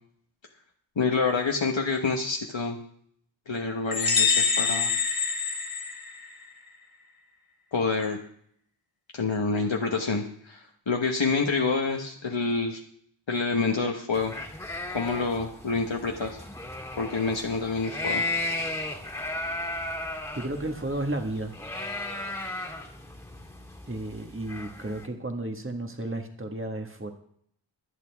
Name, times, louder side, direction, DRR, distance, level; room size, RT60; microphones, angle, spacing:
voice 1, 1.0-2.8 3.5-4.9 7.7-8.2 9.1-12.8 13.3-14.3 14.9-16.4 17.0-18.2, left 4 dB, 75° left, 1 dB, 1.3 m, -27 dB
sound 1, 3.9-6.5, left 5 dB, 50° left, 2.1 m, -25 dB
sound 2, 14.1-25.0, left 2 dB, 5° left, 2.2 m, -35 dB
voice 2, 19.9-21.5 23.9-27.1, right 1 dB, 25° right, 4 dB, 1.6 m, -33 dB
24.0 x 8.5 x 3.5 m, 0.65 s
wide cardioid pair, 50°, 46 cm